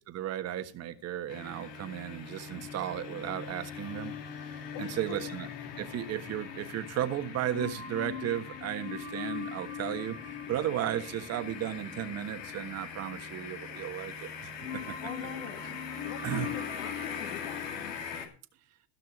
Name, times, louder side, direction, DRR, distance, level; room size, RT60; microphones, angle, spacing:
voice 1, 0.0-4.1 4.8-5.5 5.8-10.2 10.5-14.5 16.2-16.5, right 11 dB, 30° right, 9 dB, 1.4 m, -34 dB
sound 1, 1.3-18.3, left 6 dB, 85° left, 3.1 m, -42 dB
sound 2, 3.8-7.0 7.5-14.3 14.6-17.8, left 7 dB, 20° left, 2.5 m, -43 dB
voice 2, 4.7-5.2 15.0-15.6 16.0-17.9, left 10 dB, 45° left, 8 dB, 1.3 m, -44 dB
16.0 x 5.9 x 6.0 m, 0.37 s
supercardioid pair, 130°, 47 cm